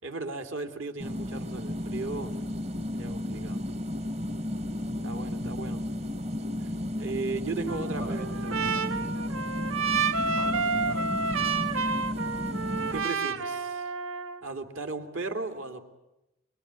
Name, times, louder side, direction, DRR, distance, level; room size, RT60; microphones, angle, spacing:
voice 1, 0.0-2.4 2.9-3.6 5.0-5.8 6.6-8.7 12.9-13.9 14.4-15.8, right 3 dB, 70° right, 6 dB, 3.1 m, -36 dB
sound 1, 1.0-13.1, left 1 dB, 30° right, 1.2 m, -33 dB
voice 2, 5.4-5.7 8.0-9.0 10.3-11.4, equal, 50° right, 3 dB, 2.2 m, -42 dB
Trumpet, 7.7-14.4, right 4 dB, 90° right, 1.8 m, -30 dB
24.5 x 23.5 x 9.8 m, 0.92 s
head